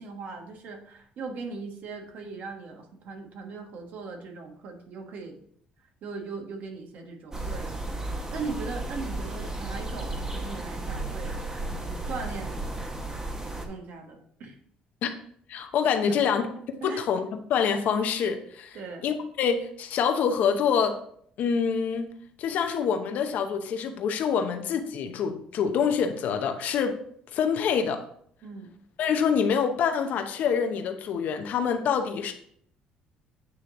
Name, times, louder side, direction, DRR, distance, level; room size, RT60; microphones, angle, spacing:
voice 1, 0.0-5.4 6.0-11.4 11.7-12.8 13.5-14.6 16.0-16.4 16.8-17.0 18.7-19.1 28.4-28.7, right 4 dB, 65° right, 4 dB, 1.2 m, -39 dB
sound 1, 7.3-13.7, right 2 dB, 20° right, 1.0 m, -34 dB
voice 2, 15.5-16.4 16.8-18.8 19.0-21.0 21.4-22.1 22.4-27.0 27.3-28.0 29.0-32.3, left 7 dB, 65° left, 6 dB, 0.8 m, -26 dB
8.5 x 3.1 x 3.8 m, 0.64 s
supercardioid pair, 75°, 3 cm